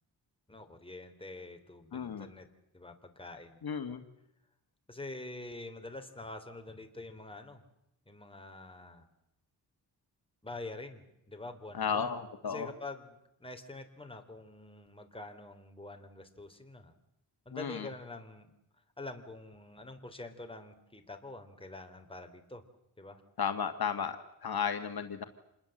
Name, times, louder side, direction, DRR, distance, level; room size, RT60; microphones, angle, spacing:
voice 1, 0.5-2.5 2.7-3.6 4.9-7.6 8.1-9.1 10.4-12.1 12.4-16.9 17.4-18.5 19.0-22.6 23.0-23.2, left 2 dB, 15° left, 5 dB, 3.2 m, -46 dB
voice 2, 1.9-2.3 3.6-4.0 11.7-12.7 17.5-17.9 23.4-25.2, left 7 dB, 60° left, 7 dB, 1.7 m, -34 dB
27.0 x 21.0 x 7.7 m, 0.84 s
cardioid pair, 85°, 40 cm